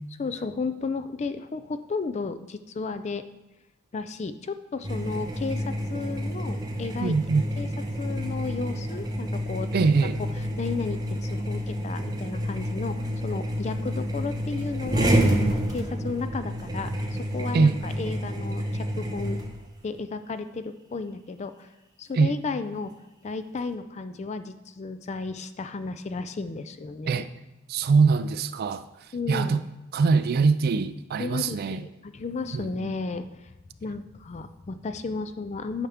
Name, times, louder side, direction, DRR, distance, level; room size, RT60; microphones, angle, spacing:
voice 1, 0.2-3.2 3.9-7.1 7.6-7.7 8.0-9.7 10.6-19.4 19.8-21.7 22.0-22.9 23.2-27.2 29.1-29.6 31.2-33.5 33.8-35.9, left 4 dB, 30° left, 11 dB, 0.3 m, -33 dB
sound 1, 4.8-19.7, equal, 20° right, 0.8 m, -29 dB
voice 2, 7.0-7.5 9.7-10.2 17.5-17.8 22.2-22.3 27.1-27.3 27.7-28.8 29.3-29.6 29.9-31.8 32.5-32.9, right 4 dB, 45° right, 12 dB, 0.3 m, -22 dB
10.0 x 5.7 x 3.5 m, 1.0 s
head